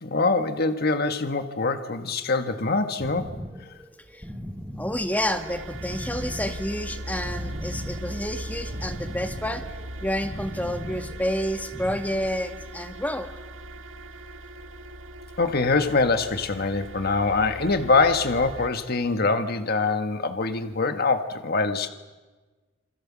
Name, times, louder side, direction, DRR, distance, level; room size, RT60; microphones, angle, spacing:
voice 1, 0.0-3.3 15.4-21.9, left 3 dB, 50° left, 8 dB, 1.5 m, -24 dB
sound 1, 3.0-12.0, equal, 10° right, 2.9 m, -38 dB
voice 2, 4.8-9.6 10.0-13.3, equal, 10° left, 6 dB, 1.9 m, -29 dB
sound 2, 5.0-18.7, right 1 dB, 70° right, 1.5 m, -39 dB
28.0 x 27.5 x 7.4 m, 1.3 s
head